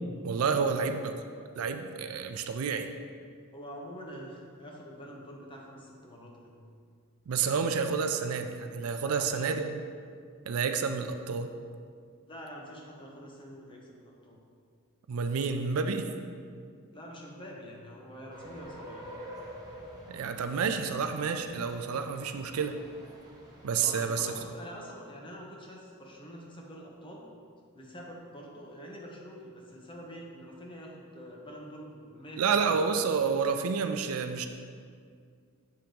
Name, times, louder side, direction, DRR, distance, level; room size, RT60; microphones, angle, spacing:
voice 1, 0.2-1.1 1.6-2.9 7.3-9.8 10.5-11.5 15.1-16.1 20.1-22.8 23.6-24.3 32.4-34.5, right 5 dB, 70° right, 7 dB, 0.4 m, -29 dB
voice 2, 3.5-6.6 9.0-9.7 12.3-14.4 16.9-19.1 23.8-27.3 27.7-32.7, equal, 25° left, -1 dB, 0.9 m, -46 dB
sound 1, 18.3-24.4, equal, 20° right, 1.1 m, -48 dB
7.6 x 2.9 x 5.1 m, 2.2 s
head